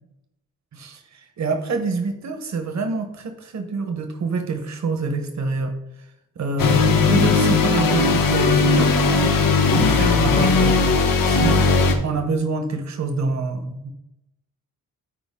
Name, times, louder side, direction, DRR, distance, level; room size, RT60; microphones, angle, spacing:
voice 1, 0.7-5.7 6.4-9.4 9.7-10.9 11.2-11.6 12.0-13.9, right 3 dB, 55° right, 7 dB, 1.1 m, -26 dB
sound 1, 6.6-11.9, left 4 dB, 85° left, 1.1 m, -18 dB
8.7 x 4.7 x 3.7 m, 0.86 s
wide cardioid pair, 135°, 33 cm